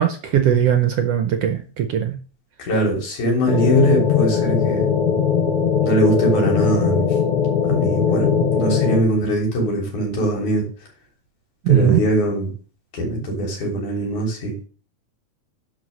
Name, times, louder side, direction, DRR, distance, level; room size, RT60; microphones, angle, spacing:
voice 1, 0.0-2.2 11.6-12.0, right 10 dB, 70° right, 7 dB, 1.5 m, -19 dB
voice 2, 2.6-4.9 5.8-7.2 7.6-10.7 11.7-12.5 12.9-14.5, right 1 dB, 80° left, 0 dB, 4.9 m, -21 dB
sound 1, 3.5-9.0, left 7 dB, 55° left, 2.1 m, -20 dB
10.5 x 4.7 x 6.4 m, 0.39 s
omnidirectional pair, 3.4 m